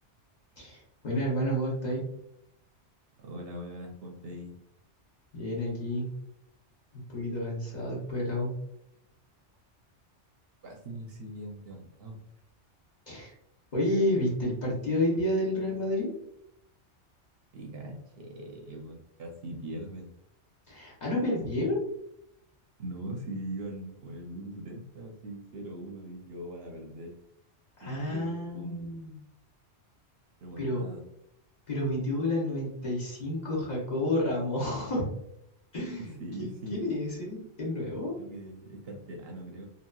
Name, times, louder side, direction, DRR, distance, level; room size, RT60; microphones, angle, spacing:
voice 1, 0.6-2.0 5.3-6.1 6.9-8.5 13.1-13.4 13.7-16.1 20.7-21.8 27.8-29.2 30.6-30.8 31.7-35.1 35.7-36.1 36.4-38.2, left 1 dB, 40° left, -5 dB, 0.9 m, -30 dB
voice 2, 3.2-4.5 10.6-12.2 17.5-20.1 22.8-27.1 27.8-28.9 30.4-31.0 36.2-36.9 38.2-39.7, right 1 dB, 65° right, 1 dB, 0.7 m, -41 dB
2.8 x 2.7 x 2.2 m, 0.76 s
omnidirectional pair, 1.2 m